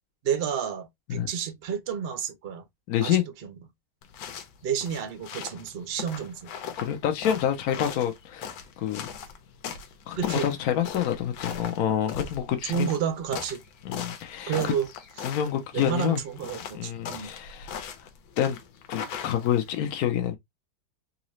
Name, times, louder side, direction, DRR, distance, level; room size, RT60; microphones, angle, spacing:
voice 1, 0.2-2.6 3.0-3.2 3.4-3.5 4.6-6.5 10.2-10.5 12.7-13.6 14.5-14.9 15.7-17.3, right 8 dB, 65° right, 0.6 m, -30 dB
voice 2, 2.9-3.2 6.8-9.1 10.1-12.9 13.8-14.7 15.2-16.2 16.7-17.7 18.4-18.6 18.9-20.4, left 10 dB, 65° left, 0.9 m, -27 dB
sound 1, 4.0-19.8, left 7 dB, 90° left, 1.5 m, -39 dB
3.8 x 2.6 x 3.0 m
omnidirectional pair, 2.1 m